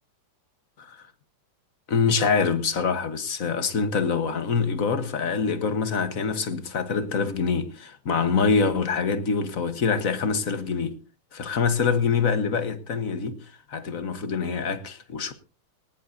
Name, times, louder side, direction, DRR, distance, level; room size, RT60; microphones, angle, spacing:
voice 1, 1.9-11.0 11.3-15.3, left 5 dB, 45° left, 1.4 m, -25 dB
19.0 x 17.5 x 2.7 m
omnidirectional pair, 2.3 m